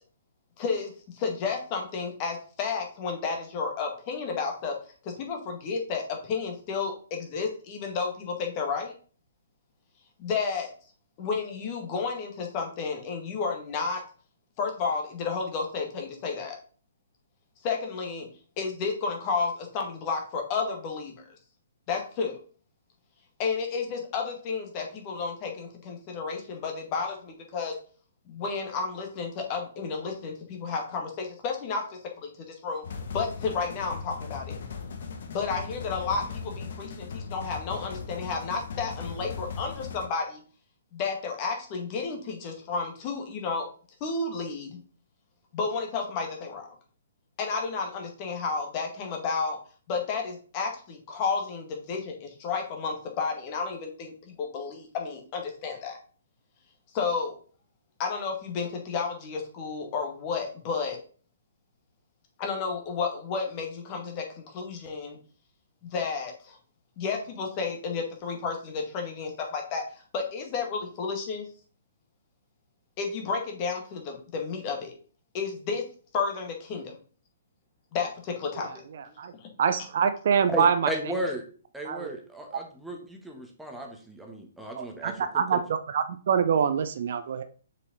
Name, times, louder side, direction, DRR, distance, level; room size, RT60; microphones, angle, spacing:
voice 1, 0.6-4.7 5.0-8.9 10.2-10.7 11.2-14.0 14.6-16.6 17.6-18.3 18.6-21.1 21.9-22.4 23.4-27.7 28.3-32.3 32.6-32.9 33.1-34.6 35.3-40.4 40.9-43.7 44.0-44.8 45.5-46.7 47.4-49.6 49.9-56.0 56.9-57.4 58.0-61.0 62.4-65.2 65.8-66.6 67.0-69.8 70.1-71.5 73.0-74.9 75.3-75.8 76.1-76.9 77.9-78.8, left 5 dB, 30° left, 2 dB, 2.0 m, -31 dB
sound 1, 32.8-40.1, left 5 dB, 55° left, 1.1 m, -38 dB
voice 2, 78.6-79.0 79.6-81.2 81.9-82.1 84.7-87.4, right 7 dB, 50° right, 10 dB, 0.6 m, -25 dB
voice 3, 80.5-81.5 81.7-85.2 85.5-85.6, right 1 dB, 5° right, 1 dB, 1.4 m, -34 dB
6.5 x 5.3 x 4.0 m, 0.41 s
figure-of-eight pair, 125°, 0 cm